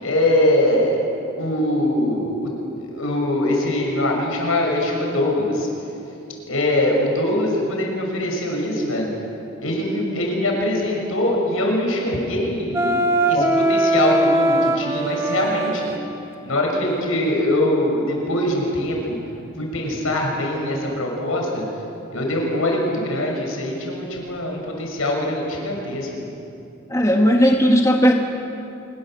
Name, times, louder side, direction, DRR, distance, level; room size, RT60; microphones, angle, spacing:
voice 1, 0.0-1.0 1.4-2.5 2.8-5.7 6.5-9.1 9.6-13.0 13.3-16.0 16.4-19.1 19.6-21.6 22.1-26.3, left 1 dB, 90° left, 0 dB, 6.5 m, -22 dB
Wind instrument woodwind instrument, 12.7-16.0, right 1 dB, 10° right, 1.0 m, -20 dB
voice 2, 26.9-28.1, equal, 15° left, 1 dB, 1.7 m, -16 dB
25.5 x 22.0 x 7.8 m, 2.8 s
head